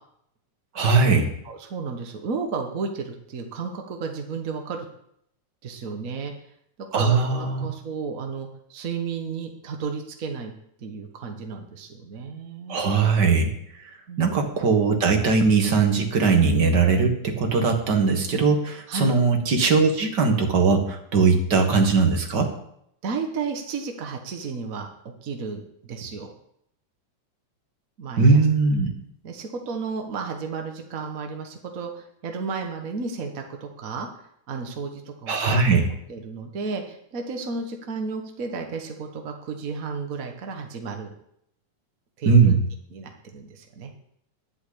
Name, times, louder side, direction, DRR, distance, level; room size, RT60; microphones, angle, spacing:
voice 1, 0.8-1.3 6.9-7.7 12.7-13.5 14.2-22.5 28.2-28.9 35.3-35.9 42.3-42.6, right 4 dB, 40° right, 4 dB, 1.9 m, -20 dB
voice 2, 1.4-4.9 5.6-6.3 6.9-10.5 10.8-12.8 14.1-14.4 18.9-19.2 23.0-24.9 25.2-26.3 28.0-28.4 29.2-34.1 34.5-35.6 36.1-41.1 42.2-42.6 42.9-43.9, right 5 dB, 60° right, 3 dB, 0.8 m, -33 dB
11.0 x 8.2 x 8.5 m, 0.72 s
omnidirectional pair, 3.5 m